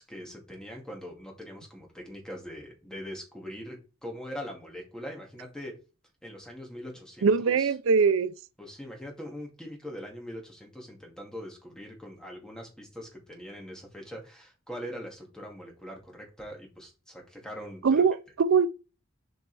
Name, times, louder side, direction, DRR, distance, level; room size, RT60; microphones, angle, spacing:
voice 1, 0.0-5.8 6.2-7.7 8.6-18.0, equal, 5° left, 2.2 m, -42 dB
voice 2, 7.2-8.3 17.8-18.7, right 5 dB, 80° right, 0.4 m, -22 dB
7.8 x 5.1 x 3.4 m
head